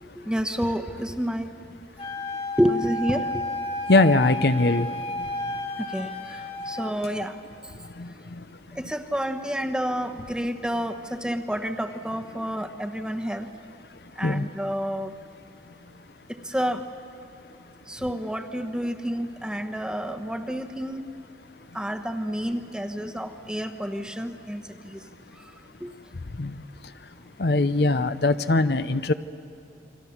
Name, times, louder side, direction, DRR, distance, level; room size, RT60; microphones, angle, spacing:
voice 1, 0.0-1.6 2.6-3.4 5.9-7.4 8.8-13.5 14.2-15.1 16.3-16.8 17.9-21.0 21.7-25.0 25.8-25.9, equal, 5° right, 6 dB, 1.0 m, -29 dB
Wind instrument woodwind instrument, 2.0-7.0, left 1 dB, 35° left, 1.7 m, -32 dB
voice 2, 3.9-4.9 14.2-14.4 26.4-26.5 27.4-29.1, left 2 dB, 65° left, 12 dB, 0.7 m, -21 dB
29.5 x 24.0 x 7.2 m, 2.8 s
head